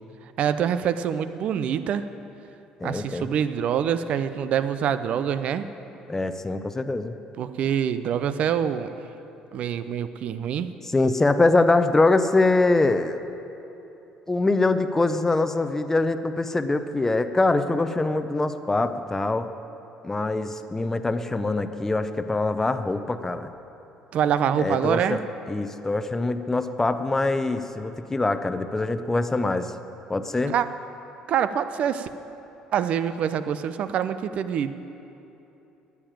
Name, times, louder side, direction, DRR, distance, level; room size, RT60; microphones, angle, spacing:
voice 1, 0.4-2.1 2.8-5.7 7.4-8.9 9.5-10.7 24.1-25.2 30.5-30.7 31.3-32.1 32.7-34.8, right 8 dB, 60° right, 12 dB, 0.6 m, -25 dB
voice 2, 2.8-3.3 6.1-7.1 10.9-13.2 14.3-19.5 20.0-23.5 24.6-25.2 25.5-29.7 30.1-30.5, left 2 dB, 15° left, 9 dB, 0.7 m, -23 dB
9.9 x 9.6 x 9.0 m, 3.0 s
supercardioid pair, 75°, 2 cm